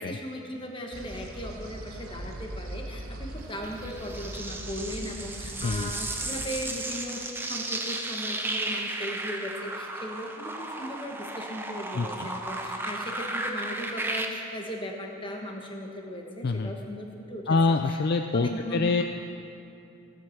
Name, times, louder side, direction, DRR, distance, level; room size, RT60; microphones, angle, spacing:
voice 1, 0.0-18.0 18.3-19.0, equal, 25° left, 1 dB, 1.3 m, -37 dB
sound 1, 0.9-6.4, right 1 dB, 85° right, 1.1 m, -40 dB
sound 2, 3.6-14.3, right 2 dB, 10° right, 0.6 m, -34 dB
voice 2, 11.9-12.3 16.4-16.7 17.5-19.0, left 3 dB, 50° left, 6 dB, 0.4 m, -25 dB
17.0 x 8.2 x 5.9 m, 2.8 s
head